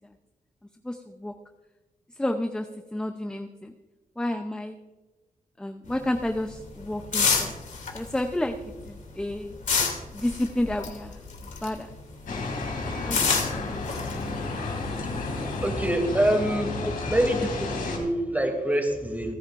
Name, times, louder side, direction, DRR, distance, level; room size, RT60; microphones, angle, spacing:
voice 1, 0.8-1.3 2.2-3.7 4.2-4.7 5.6-7.5 7.9-8.6 8.8-9.5 10.1-11.9 12.3-12.4 13.0-13.7, left 1 dB, 5° left, 6 dB, 0.6 m, -31 dB
sound 1, 5.9-11.9 12.2-15.6, left 5 dB, 65° left, 2.7 m, -29 dB
sound 2, 12.3-18.0, left 3 dB, 80° left, 3.7 m, -32 dB
voice 2, 15.0-16.7 17.0-19.3, right 1 dB, 10° right, 3 dB, 2.7 m, -26 dB
30.0 x 10.0 x 2.5 m, 1.2 s
wide cardioid pair, 130°, 14 cm